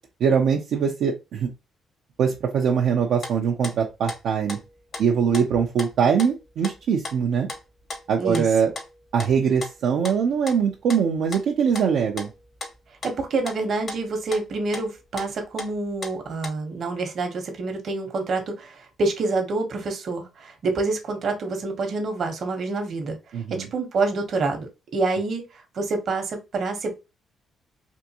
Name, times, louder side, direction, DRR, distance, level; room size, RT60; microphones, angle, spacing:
voice 1, 0.2-1.5 2.2-4.6 5.0-7.5 8.1-8.7 9.1-12.3 23.3-23.7, right 7 dB, 75° right, 0 dB, 0.5 m, -22 dB
sound 1, 2.9-3.0 3.2-15.8 16.0-16.5, left 3 dB, 50° left, 1.0 m, -37 dB
voice 2, 13.0-23.2 23.5-24.7 24.9-26.9, right 3 dB, 55° right, 4 dB, 1.0 m, -27 dB
3.5 x 2.6 x 2.8 m, 0.26 s
cardioid pair, 90°, 0 cm